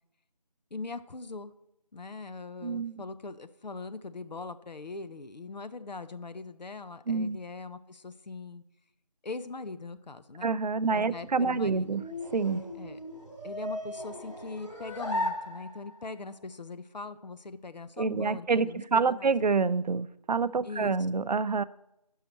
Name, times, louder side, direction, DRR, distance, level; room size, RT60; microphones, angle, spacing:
voice 1, 0.7-1.5 1.9-8.6 9.2-10.5 10.9-12.0 12.8-13.0 13.4-19.3 20.6-21.0, left 3 dB, 90° left, 12 dB, 0.6 m, -41 dB
voice 2, 2.6-3.0 7.1-7.4 10.4-12.0 12.3-12.6 18.0-21.6, right 4 dB, 80° right, 15 dB, 0.5 m, -27 dB
sound 1, 11.2-16.1, left 1 dB, 45° left, 1.6 m, -37 dB
12.0 x 5.6 x 4.2 m, 0.86 s
figure-of-eight pair, 170°, 21 cm